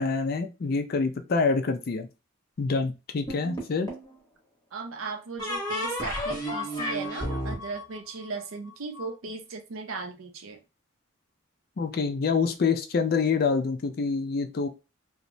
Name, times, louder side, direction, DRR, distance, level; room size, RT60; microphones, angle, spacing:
voice 1, 0.0-2.1 2.6-3.9 11.8-14.7, left 4 dB, 45° left, 7 dB, 0.4 m, -26 dB
sound 1, 3.3-4.1 5.4-9.0, equal, 20° left, 0.9 m, -33 dB
voice 2, 4.7-10.6, right 4 dB, 90° right, 6 dB, 0.6 m, -37 dB
3.0 x 2.1 x 2.6 m, 0.28 s
head